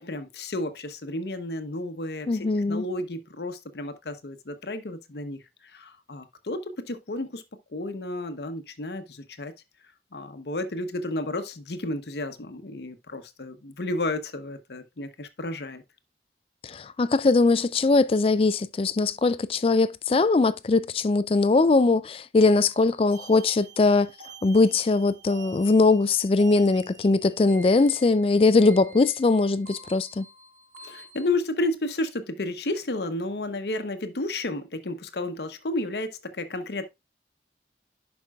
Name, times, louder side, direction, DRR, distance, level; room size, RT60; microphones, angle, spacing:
voice 1, 0.0-5.4 5.7-7.4 7.7-9.5 10.1-15.8 30.8-36.9, left 2 dB, 70° left, 0.8 m, -32 dB
voice 2, 2.3-2.8 16.6-24.1 24.4-30.2, left 3 dB, 30° left, 0.3 m, -21 dB
sound 1, 22.6-31.3, right 2 dB, 50° right, 2.1 m, -46 dB
11.0 x 5.2 x 2.3 m
head